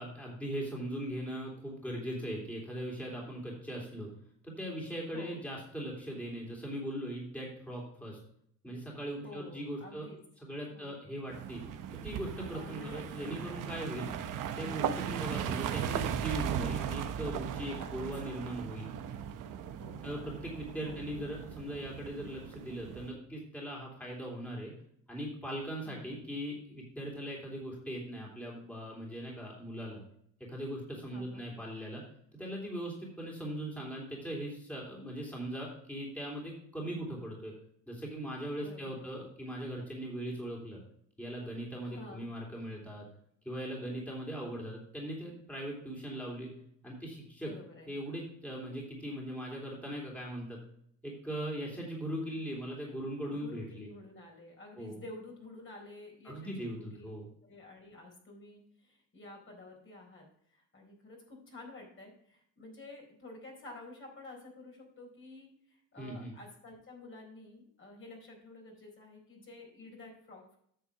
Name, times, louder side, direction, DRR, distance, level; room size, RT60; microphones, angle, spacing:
voice 1, 0.0-4.1 4.4-8.2 8.6-10.1 10.4-11.6 12.0-14.1 14.6-18.9 20.0-24.7 25.1-30.0 30.5-32.0 32.4-37.5 37.9-40.8 41.2-43.1 43.4-46.5 46.8-47.5 47.9-50.6 51.0-53.9 54.8-55.0 56.2-57.3 66.0-66.3, right 1 dB, 5° left, -3 dB, 3.2 m, -40 dB
voice 2, 9.2-10.2 10.7-11.3 12.5-13.4 17.8-18.1 19.8-20.1 20.8-21.0 25.8-26.2 31.1-31.4 38.6-39.1 41.8-42.3 47.4-47.9 52.3-52.4 53.3-57.1 57.4-70.6, left 2 dB, 35° left, 0 dB, 4.2 m, -50 dB
sound 1, 11.3-23.1, right 9 dB, 65° right, 1.0 m, -38 dB
9.4 x 6.5 x 4.8 m, 0.67 s
supercardioid pair, 90°, 33 cm